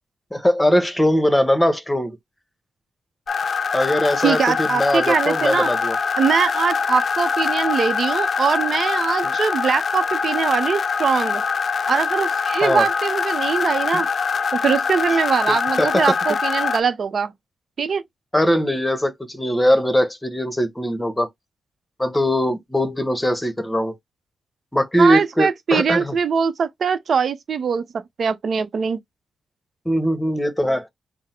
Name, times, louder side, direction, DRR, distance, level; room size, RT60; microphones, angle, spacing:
voice 1, 0.3-2.2 3.7-6.0 9.2-9.3 12.6-12.9 13.9-14.0 15.5-16.1 18.3-21.3 22.0-24.0 24.7-26.1 29.8-30.9, equal, 10° left, 1.1 m, -20 dB
sound 1, 3.3-16.8, left 5 dB, 55° left, 0.5 m, -23 dB
voice 2, 4.2-5.7 6.2-11.4 11.9-14.1 14.5-17.3 17.8-18.0 25.0-29.0, right 6 dB, 60° right, 0.8 m, -22 dB
3.7 x 2.1 x 4.3 m
cardioid pair, 65°, 0 cm